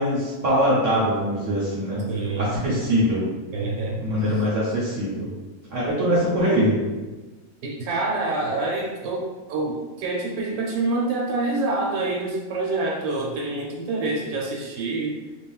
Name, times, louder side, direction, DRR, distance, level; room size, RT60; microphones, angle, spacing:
voice 1, 0.0-2.0 2.4-3.2 4.0-5.3 5.7-6.8, equal, 60° right, -6 dB, 0.9 m, -22 dB
voice 2, 2.1-2.6 3.5-4.4 7.6-15.2, right 2 dB, 85° right, -1 dB, 1.2 m, -27 dB
3.3 x 2.2 x 2.2 m, 1.2 s
omnidirectional pair, 1.7 m